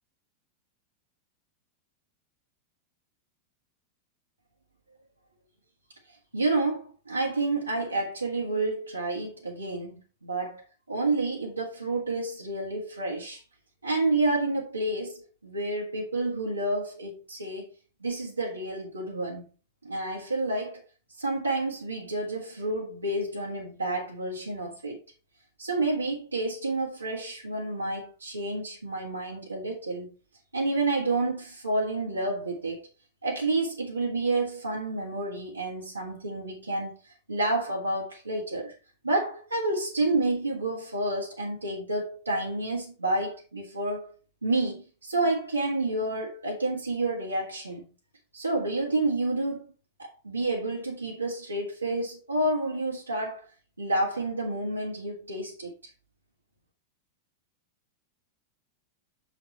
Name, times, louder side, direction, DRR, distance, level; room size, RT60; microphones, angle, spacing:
voice 1, 6.3-10.6 10.9-13.4 13.8-17.7 18.0-19.4 19.8-20.8 21.2-25.0 25.6-30.1 30.5-32.9 33.2-38.7 39.0-44.1 44.4-47.8 48.3-49.7 50.0-53.4 53.8-55.7, right 2 dB, 85° right, 1.6 m, -29 dB
6.8 x 5.0 x 4.3 m
figure-of-eight pair, 90°, 0 cm